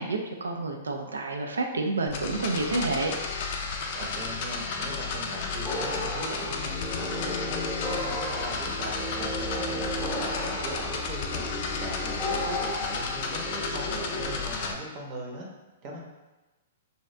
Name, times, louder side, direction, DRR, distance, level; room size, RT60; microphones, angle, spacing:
voice 1, 0.0-3.1, right 3 dB, 90° right, 3 dB, 0.4 m, -29 dB
sound 1, 2.1-14.7, left 4 dB, 50° left, 0.4 m, -33 dB
voice 2, 3.9-6.7 7.0-7.6 7.9-11.4 11.8-15.5 15.8-16.0, right 1 dB, 40° right, -2 dB, 0.7 m, -39 dB
sound 2, 5.6-14.4, equal, 5° left, 0.8 m, -34 dB
2.7 x 2.3 x 3.2 m, 1.1 s
hypercardioid pair, 125°, 0 cm